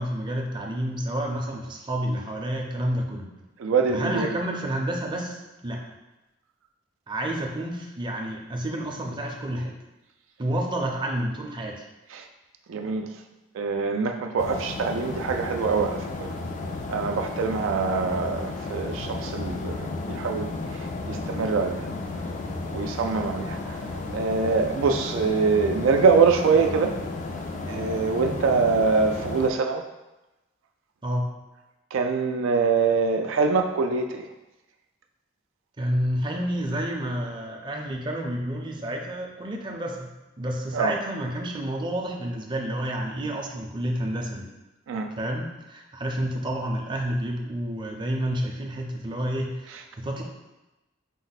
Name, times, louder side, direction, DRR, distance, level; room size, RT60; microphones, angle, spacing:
voice 1, 0.0-3.3 3.9-5.8 7.1-9.8 10.4-11.8 31.0-31.2 35.8-40.1 40.4-44.5 45.2-50.2, right 1 dB, 25° right, 0 dB, 0.5 m, -29 dB
voice 2, 3.6-4.3 12.1-12.2 12.7-13.1 13.6-16.3 16.9-20.6 21.1-21.8 22.7-23.8 24.1-26.9 27.7-29.8 31.9-34.3 40.7-40.9 44.9-45.1, right 4 dB, 85° right, 5 dB, 0.4 m, -24 dB
sound 1, 14.4-29.5, left 3 dB, 40° left, 0.4 m, -33 dB
5.2 x 2.1 x 4.0 m, 1.0 s
head